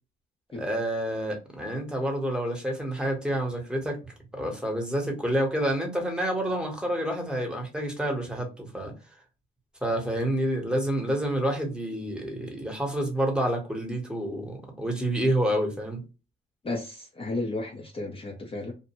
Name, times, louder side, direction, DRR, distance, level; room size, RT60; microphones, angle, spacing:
voice 1, 0.5-8.9 9.8-16.0, right 1 dB, 5° right, 1.0 m, -28 dB
voice 2, 16.6-18.7, left 2 dB, 25° left, 0.6 m, -33 dB
2.5 x 2.2 x 2.9 m
cardioid pair, 90°, 20 cm